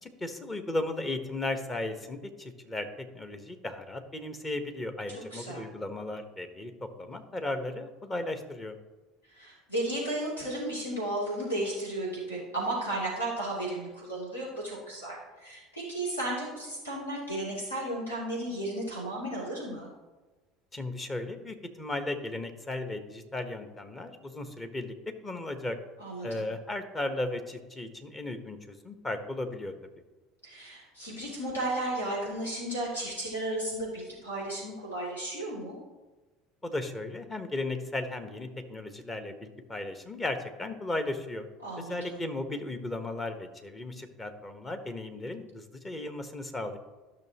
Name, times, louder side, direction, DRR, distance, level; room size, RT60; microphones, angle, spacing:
voice 1, 0.0-8.8 20.7-24.9 25.2-25.8 26.2-29.7 36.6-41.5 41.8-46.8, left 2 dB, 20° left, 7 dB, 1.2 m, -35 dB
voice 2, 5.3-5.6 9.3-19.9 26.0-26.4 30.4-35.8 41.6-42.2, right 1 dB, 80° left, -5 dB, 3.1 m, -34 dB
13.5 x 6.3 x 3.0 m, 1.2 s
figure-of-eight pair, 65°, 0 cm